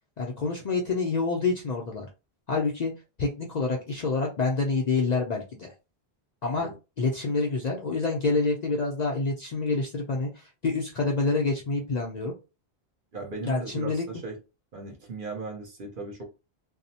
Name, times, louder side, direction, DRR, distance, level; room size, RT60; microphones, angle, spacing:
voice 1, 0.2-2.1 2.5-2.9 3.2-5.7 6.4-6.7 7.0-12.3 13.4-14.0, left 3 dB, 55° left, 0 dB, 0.5 m, -27 dB
voice 2, 13.1-14.4 14.7-16.2, right 3 dB, 55° right, 1 dB, 1.0 m, -37 dB
2.7 x 2.0 x 2.7 m, 0.29 s
omnidirectional pair, 1.1 m